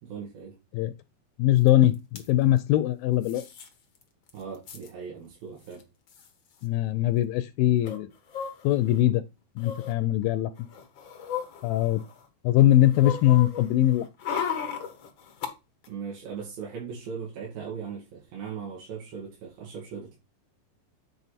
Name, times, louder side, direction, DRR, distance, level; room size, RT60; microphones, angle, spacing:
voice 1, 0.0-0.6 4.3-5.8 15.9-20.2, right 6 dB, 75° right, 4.1 m, -38 dB
voice 2, 1.4-3.4 6.6-8.1 8.6-9.2 9.6-10.5 11.6-12.0 12.4-14.1, left 13 dB, 80° left, 2.3 m, -22 dB
sound 1, 1.7-1.8 1.9-2.3 3.2-3.7 4.0-4.1 4.3-4.9 5.7-5.8 6.1-6.3 7.8-9.0 9.6-9.9 10.6-12.2 12.6-15.5 15.8-15.9, left 8 dB, 65° left, 1.1 m, -35 dB
9.1 x 5.1 x 4.1 m
omnidirectional pair, 4.2 m